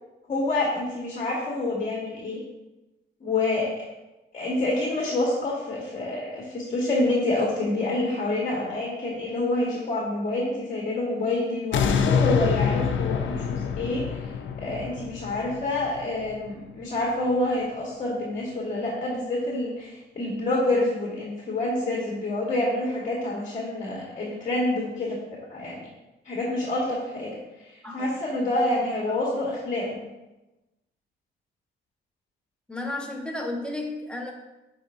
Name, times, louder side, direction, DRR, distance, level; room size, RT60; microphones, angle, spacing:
voice 1, 0.3-2.4 3.2-3.7 4.3-14.2 14.6-25.2 25.5-25.9 26.2-27.4 27.9-30.0, left 2 dB, 35° left, -3 dB, 1.5 m, -27 dB
sound 1, 11.7-16.8 17.3-17.4, left 7 dB, 70° left, 0.6 m, -26 dB
voice 2, 32.7-34.3, left 2 dB, 5° left, 0 dB, 1.2 m, -33 dB
10.5 x 4.5 x 2.7 m, 1.0 s
cardioid pair, 90°, 20 cm